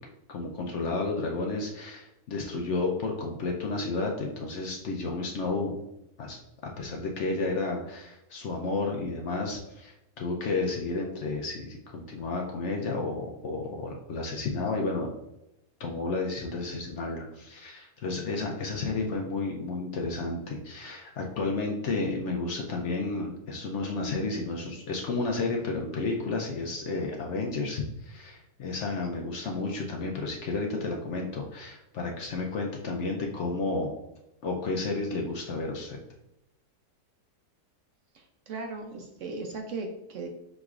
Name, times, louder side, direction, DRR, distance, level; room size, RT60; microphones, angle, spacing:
voice 1, 0.3-5.8 6.2-6.4 6.8-15.1 15.8-33.9 34.4-36.0, left 3 dB, 65° left, 0 dB, 0.7 m, -32 dB
voice 2, 38.1-40.3, right 3 dB, 65° right, 2 dB, 0.8 m, -37 dB
6.0 x 3.0 x 2.4 m, 0.90 s
omnidirectional pair, 1.6 m